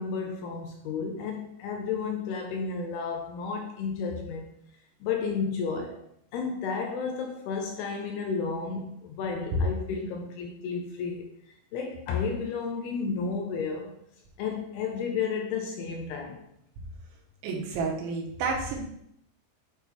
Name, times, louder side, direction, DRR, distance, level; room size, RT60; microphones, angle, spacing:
voice 1, 0.0-4.5 5.0-6.1 6.3-11.3 11.7-13.9 14.4-16.5, left 5 dB, 80° left, 2 dB, 2.4 m, -32 dB
voice 2, 17.4-18.8, right 4 dB, 80° right, -1 dB, 3.6 m, -30 dB
8.3 x 3.5 x 4.4 m, 0.72 s
omnidirectional pair, 5.2 m